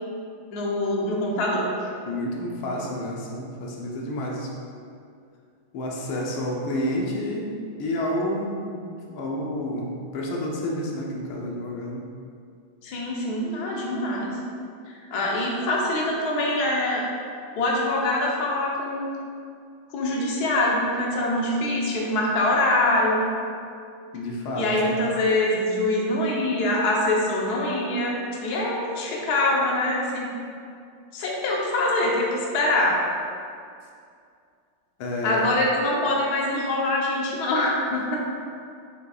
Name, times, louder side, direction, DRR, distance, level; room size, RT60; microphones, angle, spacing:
voice 1, 0.5-1.7 12.8-14.4 15.1-17.1 17.6-19.1 19.9-23.2 24.5-30.3 31.1-33.0 35.2-38.2, left 1 dB, 55° left, -3 dB, 1.4 m, -24 dB
voice 2, 2.0-4.5 5.7-12.0 24.1-25.0 35.0-35.5, left 1 dB, 85° left, -2 dB, 1.7 m, -30 dB
6.9 x 6.5 x 2.4 m, 2.3 s
omnidirectional pair, 2.2 m